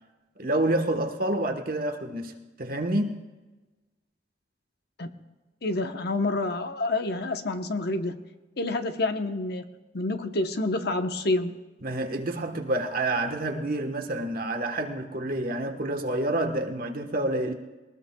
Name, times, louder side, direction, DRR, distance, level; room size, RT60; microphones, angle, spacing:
voice 1, 0.4-2.3 2.6-3.2 11.8-17.5, right 1 dB, 55° right, 5 dB, 1.3 m, -28 dB
voice 2, 5.6-8.2 8.6-9.6 9.9-11.5, left 2 dB, 60° left, 6 dB, 1.0 m, -28 dB
21.5 x 19.0 x 2.3 m, 1.2 s
head